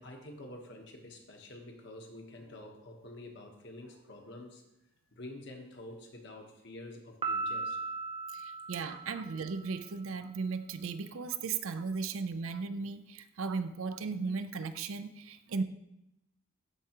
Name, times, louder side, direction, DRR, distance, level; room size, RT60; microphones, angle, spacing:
voice 1, 0.0-4.6 5.1-7.8 9.1-9.2, left 1 dB, 55° left, 2 dB, 1.1 m, -48 dB
Piano, 7.2-9.8, right 3 dB, 25° right, 0.5 m, -37 dB
voice 2, 8.3-15.6, right 4 dB, 75° right, 11 dB, 0.5 m, -36 dB
12.0 x 4.6 x 2.9 m, 0.86 s
head